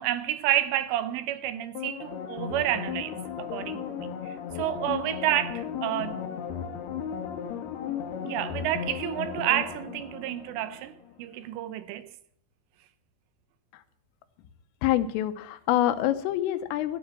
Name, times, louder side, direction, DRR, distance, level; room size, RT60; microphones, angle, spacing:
voice 1, 0.0-6.3 8.2-12.1, right 13 dB, 80° right, 3.3 m, -30 dB
sound 1, 1.8-11.1 11.5-11.6, left 8 dB, 65° left, 2.9 m, -35 dB
voice 2, 14.8-17.0, left 13 dB, 80° left, 3.5 m, -26 dB
13.5 x 9.9 x 7.5 m
omnidirectional pair, 5.8 m